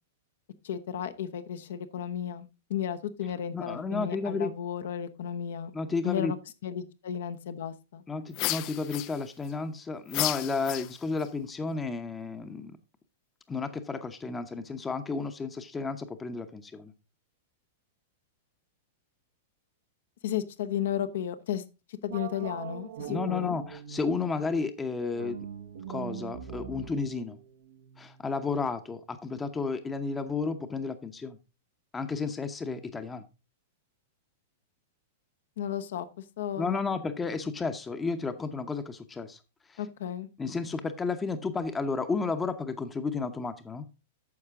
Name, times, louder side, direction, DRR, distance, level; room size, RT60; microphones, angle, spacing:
voice 1, 0.6-5.7 6.0-6.4 6.6-8.0 20.2-21.6 22.0-23.5 35.6-37.0 39.8-40.3, left 9 dB, 65° left, 10 dB, 0.9 m, -34 dB
voice 2, 3.5-4.5 5.7-6.3 8.1-12.8 13.5-16.9 23.1-25.5 25.9-27.4 28.0-31.4 31.9-33.2 36.6-39.4 39.7-39.8 40.4-43.8, left 4 dB, 15° left, 9 dB, 0.9 m, -32 dB
sound 1, 8.3-9.5 10.1-11.3, left 17 dB, 45° left, 0.4 m, -32 dB
sound 2, 22.1-24.4 25.1-28.5, right 9 dB, 70° right, 1.0 m, -42 dB
9.6 x 6.7 x 3.6 m, 0.28 s
hypercardioid pair, 100°, 0 cm